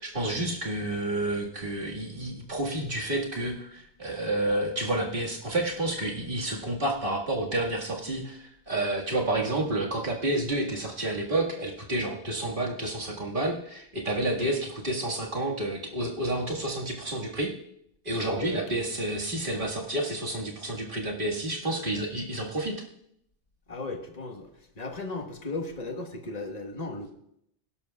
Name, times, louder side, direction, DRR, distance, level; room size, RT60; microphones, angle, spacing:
voice 1, 0.0-17.5 18.0-22.8, right 1 dB, 50° right, -2 dB, 2.0 m, -30 dB
voice 2, 18.1-18.8 23.7-24.5 24.8-27.1, left 2 dB, 40° left, 4 dB, 1.3 m, -36 dB
19.0 x 11.0 x 2.3 m, 0.75 s
omnidirectional pair, 1.1 m